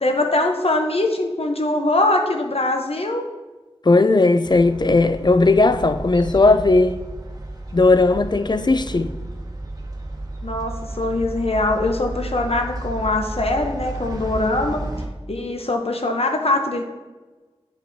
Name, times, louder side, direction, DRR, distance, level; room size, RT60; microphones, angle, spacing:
voice 1, 0.0-3.2 10.4-14.8 15.3-16.8, left 2 dB, 70° left, 0.8 m, -22 dB
voice 2, 3.9-7.0 7.7-9.1, left 3 dB, 45° left, 0.4 m, -16 dB
sound 1, 4.4-15.1, right 1 dB, 35° right, 1.0 m, -32 dB
9.4 x 5.2 x 2.7 m
wide cardioid pair, 50°, 11 cm